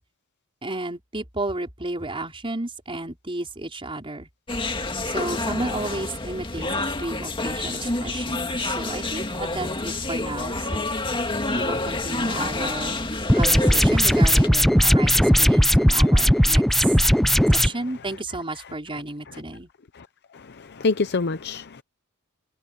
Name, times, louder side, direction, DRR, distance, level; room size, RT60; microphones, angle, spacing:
voice 1, 0.6-4.3 5.0-10.9 11.5-13.0 13.4-16.9 17.5-19.7, right 2 dB, 25° right, 5.1 m, -33 dB
sound 1, 4.5-14.5, left 2 dB, 25° left, 2.2 m, -28 dB
sound 2, 13.3-17.7, equal, ahead, 0.5 m, -17 dB
voice 2, 17.0-17.5 19.3-19.4 19.9-20.1 20.3-21.8, left 3 dB, 50° left, 0.7 m, -28 dB
head